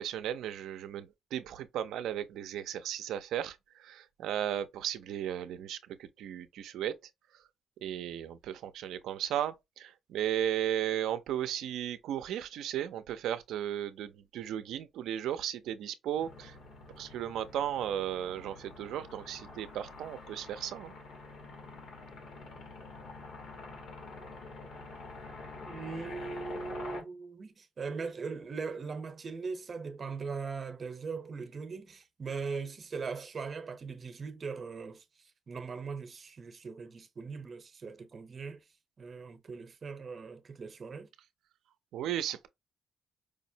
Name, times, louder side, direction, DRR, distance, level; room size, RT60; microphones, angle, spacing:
voice 1, 0.0-7.0 7.8-16.5 17.0-20.9 41.9-42.5, right 10 dB, 80° right, 0.4 m, -35 dB
sound 1, 16.2-27.0, left 3 dB, 75° left, 1.2 m, -47 dB
voice 2, 25.6-35.0 35.5-38.6 39.0-41.1, right 5 dB, 40° right, 0.7 m, -40 dB
4.9 x 2.0 x 2.7 m
cardioid pair, 90°, 0 cm